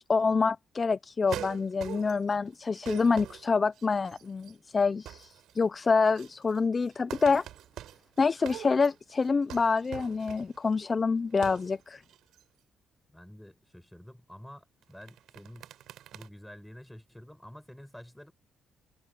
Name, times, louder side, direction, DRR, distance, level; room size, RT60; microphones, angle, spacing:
voice 1, 0.1-7.4 8.2-12.0, left 4 dB, 25° left, 0.4 m, -27 dB
sound 1, 1.3-2.3 2.6-4.5 4.8-5.6 5.8-10.7 11.3-11.8 12.0-12.4 14.8-16.3, right 12 dB, 75° right, 7.0 m, -44 dB
voice 2, 13.1-15.7 16.1-18.3, equal, 5° left, 5.9 m, -49 dB
cardioid pair, 170°, 0 cm